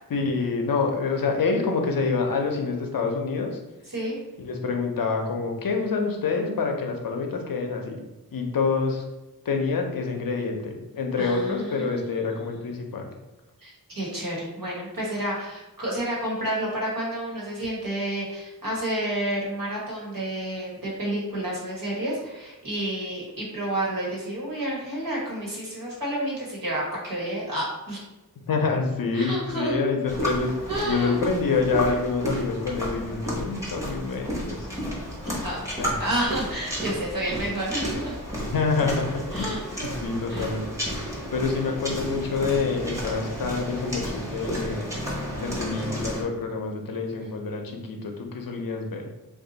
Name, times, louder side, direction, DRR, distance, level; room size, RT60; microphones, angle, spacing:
voice 1, 0.1-3.6 4.4-8.0 8.3-9.0 9.4-13.1 28.5-34.7 35.2-35.5 35.8-35.9 38.4-39.6 39.8-40.6 41.3-44.9 45.4-49.1, left 4 dB, 70° left, 2 dB, 0.6 m, -27 dB
voice 2, 11.2-12.6 13.6-28.0 29.1-29.8 30.7-31.2 35.4-35.6 36.0-38.1 39.3-39.9 40.3-40.5, right 1 dB, 65° right, -4 dB, 1.3 m, -30 dB
sound 1, 30.1-46.2, equal, 10° right, 1.0 m, -32 dB
2.6 x 2.4 x 3.9 m, 1.0 s
wide cardioid pair, 70°, 36 cm